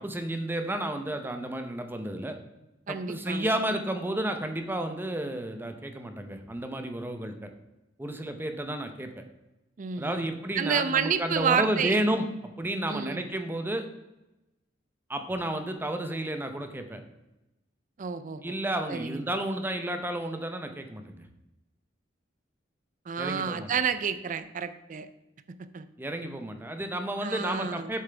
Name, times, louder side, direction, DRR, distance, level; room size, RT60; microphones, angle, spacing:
voice 1, 0.0-2.4 2.9-7.5 8.0-9.2 10.0-13.8 15.1-17.0 18.4-21.2 23.2-23.7 26.0-28.0, right 1 dB, 10° right, 6 dB, 0.7 m, -31 dB
voice 2, 2.9-3.5 9.8-10.3 10.6-12.0 12.9-13.2 18.0-18.5 18.9-19.2 23.1-25.1 25.7-25.9 27.2-27.9, right 6 dB, 45° right, 12 dB, 0.4 m, -29 dB
7.5 x 7.2 x 3.4 m, 0.98 s
head